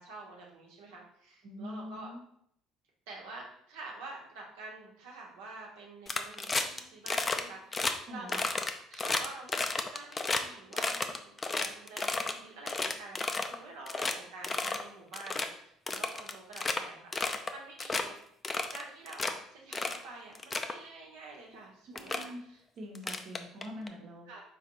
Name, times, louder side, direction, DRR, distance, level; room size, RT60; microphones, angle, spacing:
voice 1, 0.0-2.1 3.1-8.4 8.9-18.2 18.7-22.6 24.3-24.4, right 3 dB, 80° right, -2 dB, 1.1 m, -48 dB
voice 2, 1.4-2.2 8.1-8.4 21.9-22.4 22.8-24.4, left 1 dB, 60° right, 0 dB, 1.0 m, -44 dB
sound 1, 6.1-6.8 7.1-7.4 7.7-7.9 8.3-10.4 10.7-12.3 12.7-13.6 13.9-14.1 14.4-14.8 15.1-15.5 15.9-16.8 17.1-17.5 17.8-18.0 18.4-19.3 19.7-20.0 20.3-20.7 21.5-21.6 22.0-22.2 22.9-23.9, left 3 dB, 30° left, 0.5 m, -32 dB
4.1 x 3.9 x 3.0 m, 0.69 s
hypercardioid pair, 60°, 0 cm